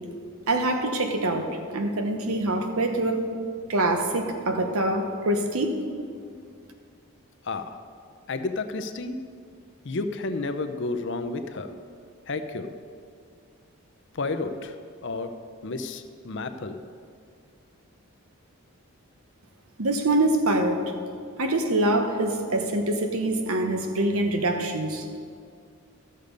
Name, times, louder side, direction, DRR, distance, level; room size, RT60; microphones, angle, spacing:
voice 1, 0.5-3.2 3.7-5.8 19.8-20.8 21.4-25.1, right 1 dB, 75° right, 5 dB, 1.0 m, -25 dB
voice 2, 7.4-7.8 8.3-9.2 9.8-11.7 12.3-12.7 14.1-14.8 15.0-15.4 15.6-16.8, left 3 dB, 55° left, 8 dB, 0.6 m, -31 dB
13.0 x 6.7 x 5.3 m, 2.3 s
head